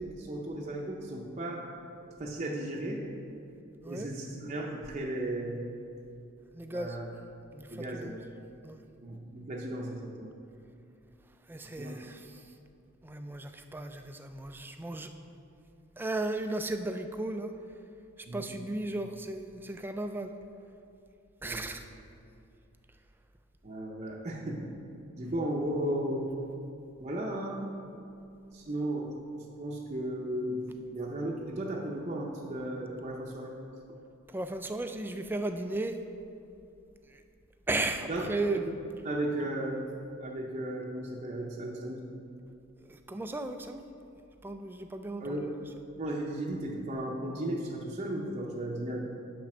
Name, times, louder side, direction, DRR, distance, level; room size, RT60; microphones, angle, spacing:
voice 1, 0.0-1.6 2.2-3.0 3.9-5.6 6.7-7.1 7.7-8.2 9.0-10.4 11.7-11.9 18.3-18.6 21.4-21.7 23.6-24.7 25.2-26.3 27.0-27.6 28.5-30.6 30.9-33.5 38.1-38.3 39.0-39.8 40.2-42.0 45.2-45.5 46.0-49.0, right 1 dB, 35° right, -3 dB, 0.7 m, -35 dB
voice 2, 6.5-7.0 7.5-8.2 8.6-8.8 11.5-12.4 13.0-15.1 16.0-17.5 18.3-20.3 21.4-21.8 34.3-36.0 37.1-37.2 37.7-38.6 42.9-43.8 44.4-45.5, right 2 dB, 10° right, 7 dB, 0.3 m, -35 dB
7.5 x 5.2 x 6.0 m, 2.6 s
head